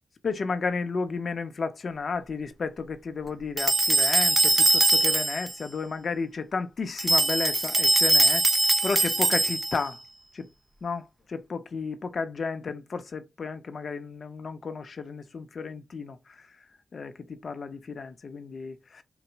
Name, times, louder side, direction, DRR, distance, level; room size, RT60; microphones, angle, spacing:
voice 1, 0.2-8.4 8.8-10.0 10.3-10.5 10.8-11.1 11.3-16.5 16.9-19.0, left 4 dB, 60° left, 0.7 m, -33 dB
sound 1, 3.6-5.5 7.0-9.9, right 2 dB, 25° right, 0.5 m, -22 dB
4.0 x 2.1 x 4.4 m
cardioid pair, 85°, 0 cm